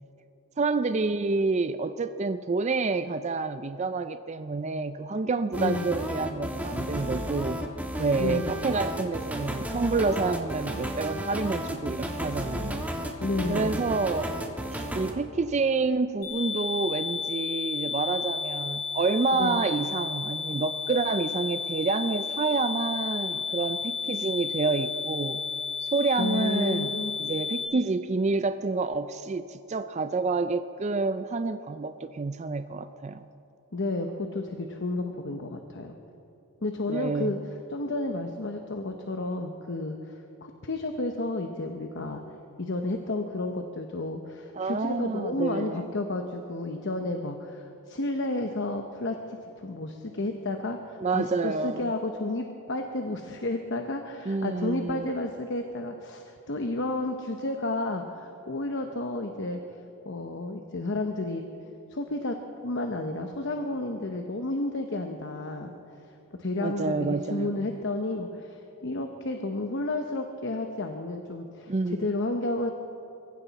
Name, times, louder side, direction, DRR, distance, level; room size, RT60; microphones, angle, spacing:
voice 1, 0.6-7.6 8.0-12.8 13.5-14.3 14.7-25.4 25.8-33.2 36.9-37.3 44.5-45.9 51.0-51.9 54.3-55.1 66.6-67.6 71.7-72.1, right 3 dB, 30° right, 10 dB, 0.4 m, -28 dB
sound 1, 5.5-15.1, equal, 5° right, 1.3 m, -33 dB
voice 2, 5.6-5.9 8.2-8.5 13.2-13.8 19.4-19.6 26.2-27.1 33.7-36.0 36.6-37.4 37.7-42.2 42.6-59.6 60.0-61.4 61.9-62.4 62.6-65.7 66.4-72.7, left 2 dB, 55° left, 5 dB, 0.9 m, -31 dB
sound 2, 16.2-27.6, left 5 dB, 35° left, 3.6 m, -32 dB
22.5 x 15.0 x 4.1 m, 2.9 s
head